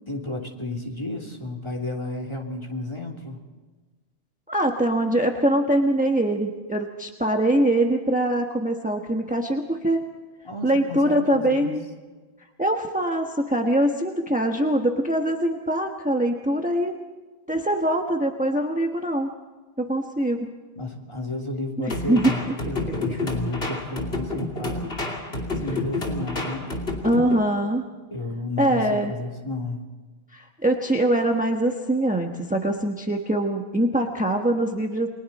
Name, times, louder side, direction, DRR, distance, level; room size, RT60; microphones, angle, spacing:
voice 1, 0.1-3.4 10.4-11.8 20.8-25.0 25.5-26.8 28.1-29.8, left 2 dB, 25° left, 0 dB, 3.1 m, -32 dB
voice 2, 4.5-10.0 10.6-11.8 12.6-16.9 17.5-19.3 19.8-20.5 21.8-22.4 27.0-27.9 28.6-29.1 30.3-35.1, right 1 dB, 10° right, 2 dB, 1.3 m, -23 dB
sound 1, 21.9-27.4, left 2 dB, 80° left, 3.1 m, -29 dB
29.5 x 22.5 x 4.2 m, 1.3 s
omnidirectional pair, 1.0 m